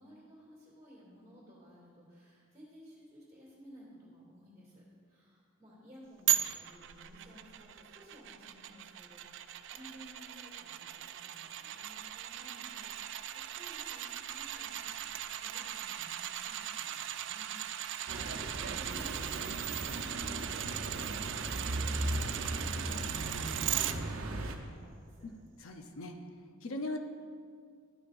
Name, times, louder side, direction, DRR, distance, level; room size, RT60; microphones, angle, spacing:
voice 1, 0.0-17.6 17.9-25.3, equal, 15° right, -7 dB, 2.5 m, -56 dB
sound 1, 6.3-23.9 24.4-24.5, right 12 dB, 60° right, 0.4 m, -38 dB
sound 2, 18.1-24.6, right 1 dB, 80° right, 0.8 m, -37 dB
voice 2, 25.6-26.2 26.6-27.0, left 2 dB, 85° left, 4 dB, 0.8 m, -39 dB
12.0 x 9.7 x 2.6 m, 2.1 s
head